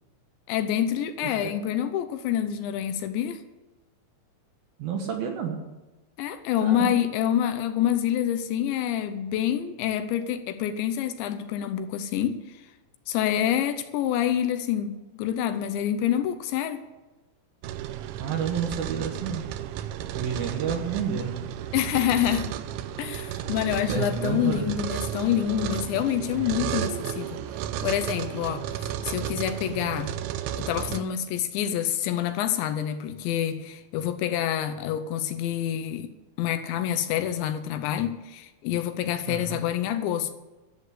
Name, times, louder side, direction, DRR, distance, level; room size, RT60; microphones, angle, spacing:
voice 1, 0.5-3.4 6.2-12.4 13.1-16.8 21.7-22.6 23.0-27.4 27.8-30.1 30.6-36.1 36.4-40.3, left 10 dB, 80° left, 2.9 m, -27 dB
voice 2, 4.8-5.6 6.6-6.9 18.1-19.5 20.1-21.5 23.9-24.7 39.3-39.6, right 7 dB, 65° right, 2.6 m, -30 dB
sound 1, 17.6-31.0, right 10 dB, 80° right, 3.0 m, -33 dB
13.0 x 8.2 x 8.1 m
omnidirectional pair, 5.5 m